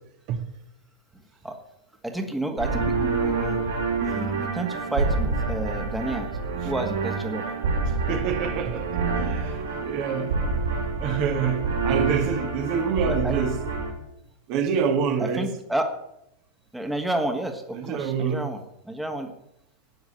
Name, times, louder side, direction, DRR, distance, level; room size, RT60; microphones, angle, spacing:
voice 1, 2.0-3.6 4.0-6.3 6.5-7.5 13.1-13.4 15.2-15.9 16.7-18.6 18.9-19.3, right 1 dB, 5° right, 2.0 m, -30 dB
sound 1, 2.6-13.9, right 4 dB, 65° right, 4.9 m, -27 dB
voice 2, 7.9-10.4 11.0-13.6 14.5-15.5 17.7-18.5, right 6 dB, 45° right, 2.0 m, -27 dB
13.0 x 9.4 x 8.7 m
figure-of-eight pair, 90°, 0 cm